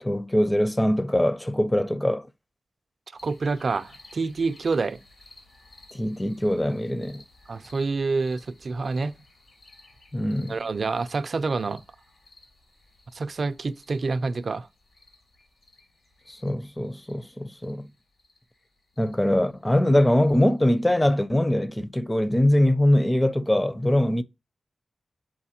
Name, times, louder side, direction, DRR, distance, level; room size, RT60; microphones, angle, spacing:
voice 1, 0.0-2.3 5.9-7.2 10.1-10.6 16.3-17.9 19.0-24.2, left 1 dB, 15° left, 0.5 m, -22 dB
sound 1, 3.2-21.1, left 2 dB, 80° left, 2.9 m, -56 dB
voice 2, 3.2-5.0 7.5-9.2 10.5-11.8 13.1-14.7, right 4 dB, 65° right, 0.5 m, -27 dB
7.6 x 4.4 x 2.8 m
wide cardioid pair, 75°, 0 cm